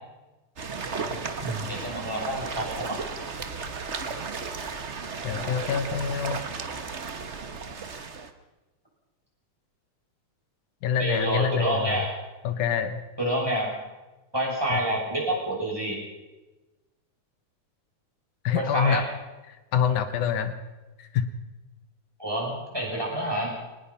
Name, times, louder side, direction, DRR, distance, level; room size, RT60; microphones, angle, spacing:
sound 1, 0.6-8.3, right 4 dB, 80° right, 0.6 m, -34 dB
voice 1, 1.4-2.9 11.0-12.1 13.2-13.7 14.3-16.0 18.5-19.0 22.2-23.5, right 1 dB, 5° right, -3 dB, 6.5 m, -28 dB
voice 2, 5.2-6.4 10.8-12.0 12.4-13.0 14.7-14.8 18.4-19.0 19.5-20.6 21.0-21.3, left 7 dB, 85° left, 10 dB, 2.6 m, -26 dB
23.0 x 19.5 x 5.7 m, 1.1 s
omnidirectional pair, 3.5 m